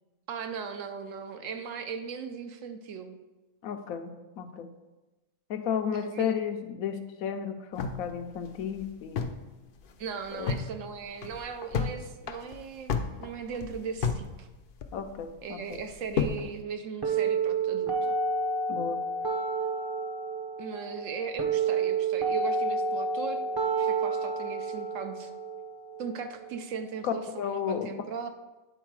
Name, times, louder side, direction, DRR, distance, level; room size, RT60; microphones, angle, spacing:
voice 1, 0.3-3.2 5.9-6.4 10.0-14.5 15.4-18.2 20.6-23.5 23.8-25.3 26.0-28.3, right 6 dB, 70° right, 7 dB, 1.0 m, -38 dB
voice 2, 3.6-4.7 5.5-9.3 10.3-10.5 14.9-15.8 18.7-19.0 27.0-27.9, left 8 dB, 80° left, 7 dB, 1.1 m, -33 dB
sound 1, 7.8-9.5 9.8-9.9 10.2-10.7 11.1-11.9 12.2-14.3 14.5-15.2 15.7-16.5, left 5 dB, 60° left, 0.6 m, -31 dB
sound 2, 17.0-27.0, right 4 dB, 25° right, 0.6 m, -30 dB
9.1 x 3.9 x 4.7 m, 1.1 s
omnidirectional pair, 1.4 m